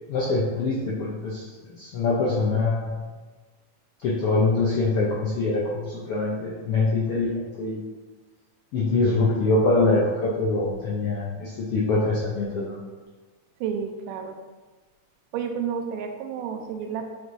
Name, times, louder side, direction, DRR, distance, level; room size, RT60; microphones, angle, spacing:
voice 1, 0.1-1.4 1.8-2.9 4.0-7.8 8.7-12.8, left 3 dB, 75° left, -6 dB, 1.3 m, -24 dB
voice 2, 13.6-14.4 15.3-17.1, right 7 dB, 85° right, 5 dB, 2.2 m, -31 dB
7.9 x 5.0 x 2.7 m, 1.3 s
omnidirectional pair, 3.7 m